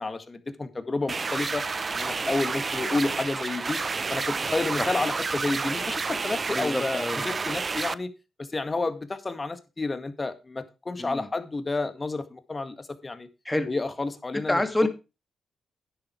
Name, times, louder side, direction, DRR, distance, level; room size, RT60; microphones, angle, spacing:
voice 1, 0.0-1.7 1.9-3.8 4.1-8.1 8.4-13.3 13.7-14.9, left 3 dB, 35° left, 10 dB, 1.9 m, -30 dB
sound 1, 1.1-7.9, right 4 dB, 45° right, 0.6 m, -30 dB
voice 2, 6.5-7.2 11.0-11.3 13.4-13.7 14.3-14.9, left 1 dB, 15° left, 8 dB, 2.5 m, -27 dB
10.5 x 8.0 x 4.7 m, 0.29 s
supercardioid pair, 55°, 0 cm